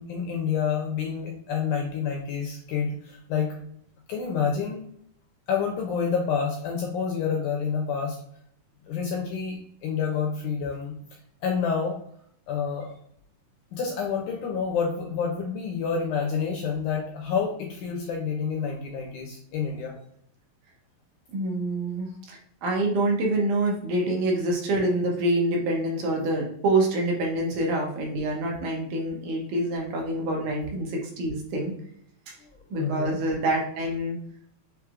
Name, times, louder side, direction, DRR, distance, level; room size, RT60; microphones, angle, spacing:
voice 1, 0.0-3.5 4.1-4.8 5.5-8.2 8.9-11.0 11.4-12.0 12.5-12.9 13.7-19.9 22.0-22.1 32.8-33.2, left 6 dB, 80° left, 1 dB, 1.8 m, -28 dB
voice 2, 21.3-31.7 32.3-32.4 32.7-34.2, right 1 dB, 70° right, -1 dB, 2.1 m, -26 dB
6.1 x 3.1 x 2.4 m, 0.67 s
omnidirectional pair, 4.2 m